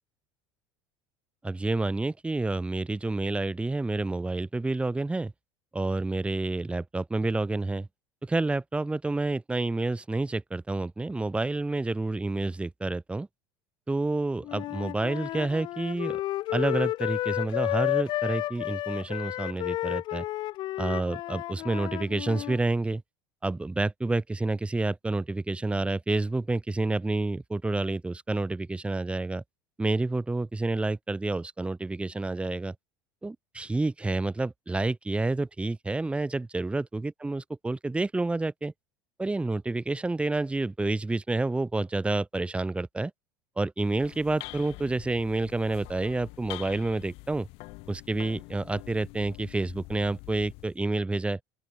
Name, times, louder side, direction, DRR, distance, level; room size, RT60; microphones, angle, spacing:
voice 1, 1.4-5.3 5.7-7.9 8.2-13.3 13.9-16.2 16.5-20.2 20.8-23.0 23.4-29.4 29.8-32.7 33.2-38.7 39.2-43.1 43.6-47.5 47.9-51.4, right 2 dB, 10° right, 0.9 m, -29 dB
Wind instrument woodwind instrument, 14.4-22.6, left 16 dB, 40° left, 0.4 m, -31 dB
sound 1, 43.8-50.8, left 26 dB, 55° left, 3.5 m, -45 dB
open air
figure-of-eight pair, 70°, 12 cm